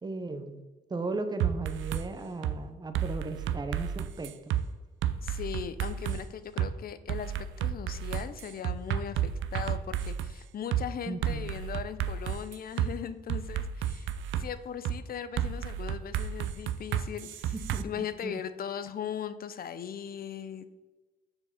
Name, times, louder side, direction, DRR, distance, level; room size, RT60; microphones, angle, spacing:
voice 1, 0.0-0.6 0.9-4.5 11.1-11.6 17.5-18.4, right 3 dB, 20° right, 8 dB, 0.7 m, -36 dB
sound 1, 1.4-2.0 2.4-2.6 2.9-4.6 5.0-6.2 6.6-6.7 7.1-10.3 10.7-10.8 11.2-12.9 13.3-14.5 14.9-15.0 15.4-17.8, right 10 dB, 75° right, 0.5 m, -31 dB
voice 2, 5.2-17.5 17.8-20.8, left 8 dB, 50° left, 13 dB, 0.6 m, -39 dB
6.5 x 4.9 x 5.7 m, 1.2 s
cardioid pair, 90°, 20 cm